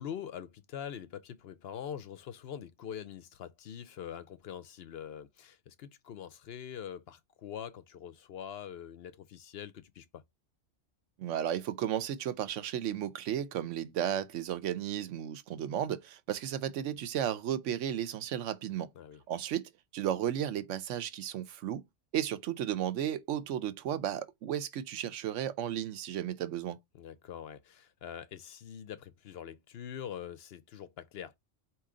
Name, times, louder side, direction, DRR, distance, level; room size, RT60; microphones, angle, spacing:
voice 1, 0.0-10.2 18.9-19.2 26.9-31.4, left 9 dB, 65° left, 0.8 m, -44 dB
voice 2, 11.2-18.9 19.3-21.8 22.1-26.8, right 10 dB, 85° right, 1.0 m, -34 dB
4.6 x 2.8 x 3.7 m
omnidirectional pair, 1.2 m